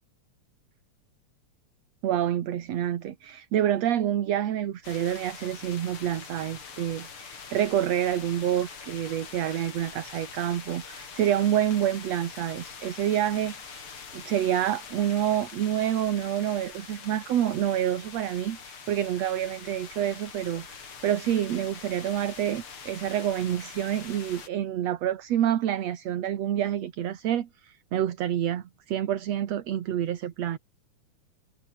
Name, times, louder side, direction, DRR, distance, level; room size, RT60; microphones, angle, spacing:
voice 1, 2.0-13.9 14.1-30.6, right 11 dB, 65° right, 2.6 m, -28 dB
sound 1, 4.8-24.5, left 6 dB, 45° left, 3.6 m, -44 dB
omnidirectional pair, 3.3 m